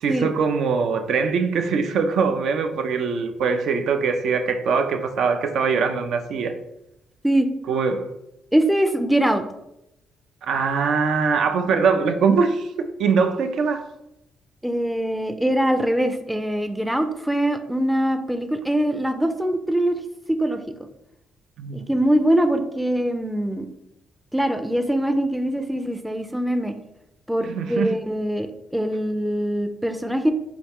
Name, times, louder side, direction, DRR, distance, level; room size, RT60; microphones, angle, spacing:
voice 1, 0.0-6.5 7.7-8.1 10.4-13.9 21.6-21.9 27.4-28.0, right 5 dB, 75° right, 0.4 m, -22 dB
voice 2, 8.5-9.4 14.6-20.0 20.3-20.6 21.9-23.7 24.3-26.7 27.3-30.3, right 1 dB, 5° right, 0.4 m, -22 dB
4.1 x 2.3 x 3.5 m
cardioid pair, 90°, 0 cm